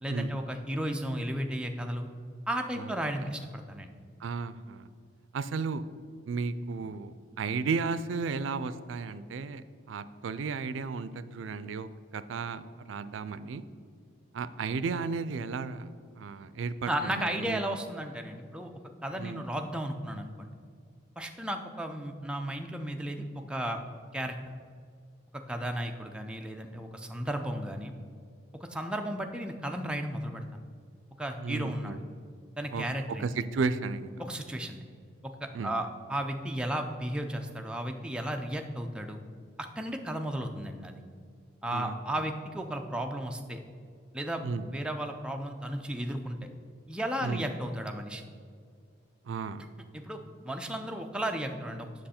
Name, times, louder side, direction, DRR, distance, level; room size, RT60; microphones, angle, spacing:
voice 1, 0.0-2.1 2.5-3.9 16.9-18.7 19.0-20.5 21.2-23.8 24.1-24.4 25.5-27.9 28.7-30.6 31.2-32.0 32.6-33.3 34.2-34.8 35.2-39.2 39.6-40.9 41.6-43.6 44.1-44.4 44.7-46.4 46.9-48.2 49.9-51.9, right 1 dB, 5° right, 3 dB, 0.4 m, -34 dB
voice 2, 4.2-4.9 5.3-5.8 6.3-9.6 9.9-12.6 12.9-13.6 14.3-15.9 16.2-17.6 19.2-19.4 31.4-32.0 32.7-32.8 33.2-34.1 35.5-35.7 41.7-42.0 44.4-44.7 47.2-47.5 49.2-49.7, right 4 dB, 85° right, 14 dB, 0.4 m, -34 dB
7.7 x 6.2 x 4.3 m, 2.1 s
head